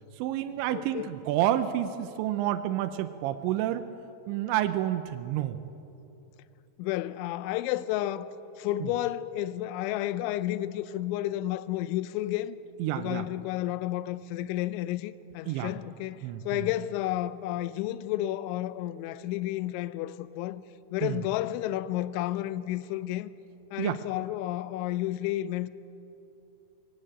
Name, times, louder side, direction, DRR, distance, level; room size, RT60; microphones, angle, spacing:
voice 1, 0.2-3.9 4.3-5.6 12.8-13.3 15.5-15.7 16.2-16.7 21.0-21.2 23.8-24.0, right 12 dB, 80° right, 2.8 m, -29 dB
voice 2, 0.7-1.2 6.8-12.6 12.9-16.2 16.4-20.6 20.9-23.3 23.7-25.7, left 14 dB, 85° left, 3.0 m, -31 dB
21.0 x 16.5 x 8.8 m
omnidirectional pair, 5.5 m